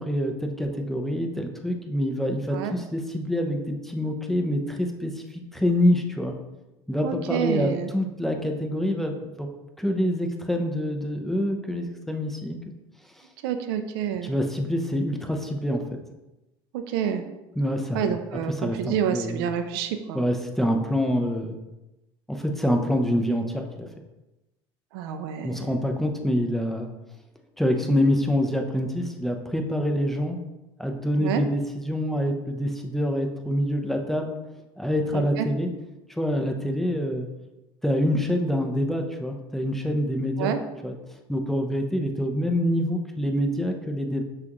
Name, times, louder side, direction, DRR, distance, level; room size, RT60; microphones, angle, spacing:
voice 1, 0.0-6.3 6.9-9.5 9.8-12.6 14.2-16.0 17.6-18.1 18.6-19.5 20.1-21.6 22.3-23.9 25.4-26.9 27.6-30.4 30.8-34.3 34.8-35.7 36.1-37.3 37.8-40.5 40.8-40.9 41.3-44.2, equal, ahead, 3 dB, 0.6 m, -26 dB
voice 2, 7.0-7.9 13.4-14.3 16.7-17.3 17.9-20.2 24.9-25.7 31.2-31.4 35.1-35.5 40.4-40.6, right 8 dB, 85° right, 8 dB, 0.4 m, -28 dB
6.0 x 2.4 x 3.0 m, 1.0 s
supercardioid pair, 95°, 12 cm